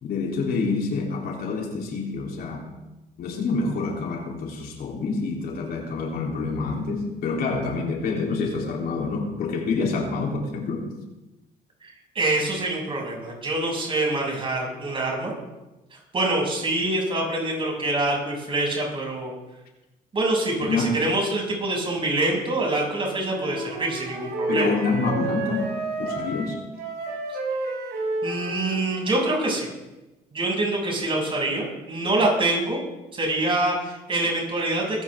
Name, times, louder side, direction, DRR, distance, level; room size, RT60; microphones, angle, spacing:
voice 1, 0.0-2.7 3.2-10.9 20.6-21.0 24.5-25.7 26.0-26.6, left 4 dB, 65° left, -1 dB, 3.7 m, -27 dB
voice 2, 11.8-15.3 16.1-19.3 20.1-24.7 28.2-29.7 30.3-32.8 33.1-35.0, right 2 dB, 30° right, -1 dB, 7.1 m, -25 dB
Wind instrument woodwind instrument, 23.3-29.6, right 2 dB, 65° right, 7.4 m, -31 dB
21.5 x 15.0 x 3.8 m, 1.0 s
cardioid pair, 110°, 17 cm